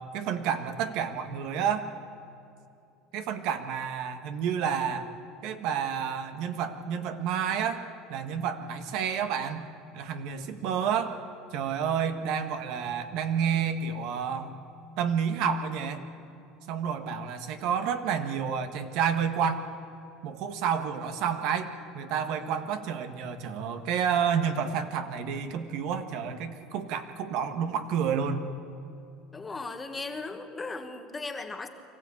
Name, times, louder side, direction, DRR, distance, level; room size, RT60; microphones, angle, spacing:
voice 1, 0.0-1.9 3.1-5.1 5.4-7.8 8.1-9.7 9.9-11.2 11.5-14.6 15.0-16.1 16.7-19.7 20.2-21.7 21.9-28.5, right 7 dB, 65° right, 8 dB, 1.5 m, -30 dB
voice 2, 29.3-31.7, left 3 dB, 15° left, 7 dB, 1.4 m, -37 dB
25.0 x 15.0 x 8.5 m, 2.7 s
cardioid pair, 135°, 0 cm